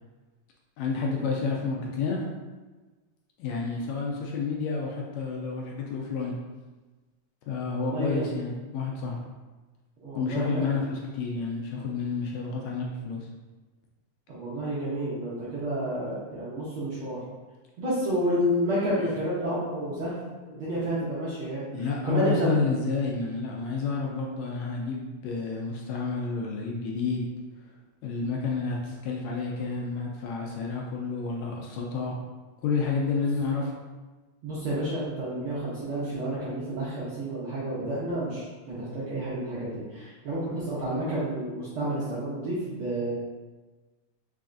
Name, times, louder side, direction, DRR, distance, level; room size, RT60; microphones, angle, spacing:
voice 1, 0.8-2.2 3.4-6.3 7.5-9.2 10.1-13.3 19.0-19.1 21.7-27.3 28.0-32.2 32.6-33.7, left 4 dB, 80° left, -1 dB, 1.7 m, -30 dB
voice 2, 7.8-8.3 10.0-10.8 14.3-17.2 17.8-20.1 20.5-22.6 34.4-43.1, right 1 dB, 65° right, -9 dB, 1.4 m, -30 dB
4.7 x 3.3 x 2.5 m, 1.3 s
omnidirectional pair, 3.3 m